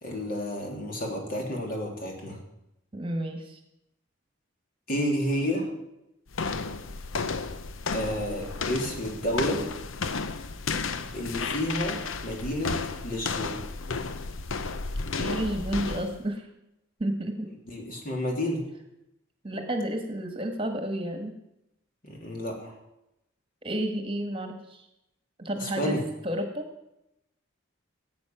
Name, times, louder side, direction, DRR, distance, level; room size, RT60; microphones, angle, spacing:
voice 1, 0.0-2.4 4.9-5.7 7.9-9.7 11.1-13.6 17.7-18.6 22.0-22.7 25.6-26.0, equal, 45° left, 0 dB, 3.1 m, -30 dB
voice 2, 2.9-3.6 15.2-16.5 17.0-17.5 19.4-21.3 23.6-24.9 25.4-26.0 26.2-26.7, right 1 dB, 25° right, 5 dB, 1.5 m, -31 dB
sound 1, 6.3-16.2, left 4 dB, 90° left, 0.8 m, -33 dB
16.0 x 8.5 x 6.0 m, 0.86 s
head